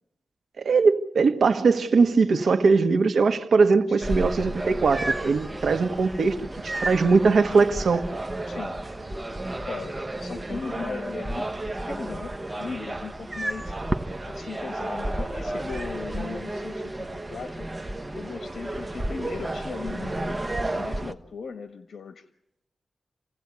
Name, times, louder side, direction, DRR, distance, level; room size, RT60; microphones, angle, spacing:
voice 1, 0.6-8.1, right 4 dB, 75° right, 1.6 m, -21 dB
sound 1, 4.0-21.1, right 1 dB, 20° right, 1.1 m, -32 dB
voice 2, 8.5-8.8 9.7-13.8 14.3-17.7 18.1-22.2, left 5 dB, 80° left, 1.4 m, -38 dB
28.0 x 17.0 x 8.5 m
wide cardioid pair, 100°, 0 cm